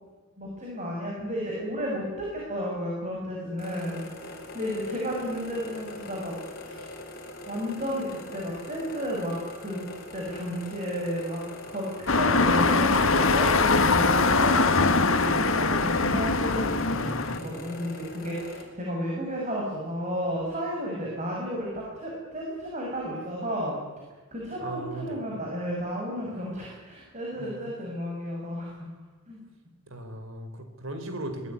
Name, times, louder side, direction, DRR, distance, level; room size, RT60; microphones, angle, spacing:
voice 1, 0.4-6.3 6.6-6.9 7.5-9.8 10.1-11.9 12.1-23.8 24.3-28.9 29.3-29.4, equal, 35° right, -2 dB, 6.7 m, -33 dB
sound 1, 3.6-18.6, left 2 dB, 45° left, 4.7 m, -42 dB
sound 2, 12.1-17.4, left 3 dB, 70° left, 1.8 m, -22 dB
voice 2, 24.6-25.3 27.4-27.5 29.9-31.5, right 1 dB, 70° right, 7 dB, 4.5 m, -37 dB
24.0 x 19.0 x 9.8 m, 1.3 s
head